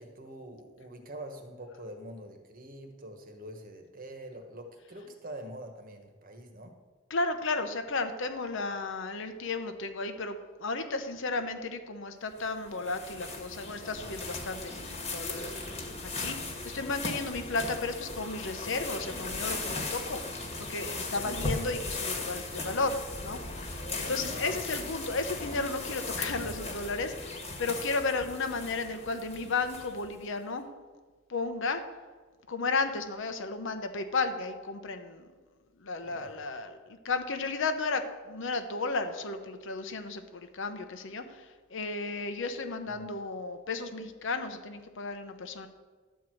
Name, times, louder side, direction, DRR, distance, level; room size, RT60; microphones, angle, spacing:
voice 1, 0.0-6.7 20.3-21.2 24.2-24.6 36.0-36.3, right 1 dB, 45° right, 5 dB, 1.3 m, -45 dB
voice 2, 7.1-15.5 16.2-20.2 20.6-30.7 31.3-31.8 32.5-35.3 35.8-45.7, left 3 dB, 65° left, 8 dB, 0.9 m, -34 dB
sound 1, 12.4-30.2, left 3 dB, 30° left, 1.5 m, -37 dB
11.5 x 4.6 x 7.7 m, 1.4 s
head